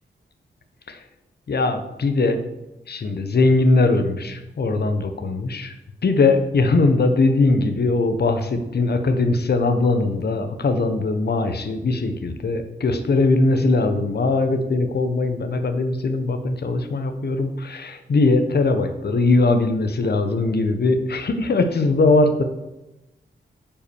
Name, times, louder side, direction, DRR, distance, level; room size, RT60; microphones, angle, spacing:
voice 1, 1.5-2.4 2.9-5.7 6.0-22.4, left 3 dB, 60° left, 7 dB, 1.1 m, -20 dB
9.1 x 5.5 x 7.0 m, 0.97 s
wide cardioid pair, 110°, 19 cm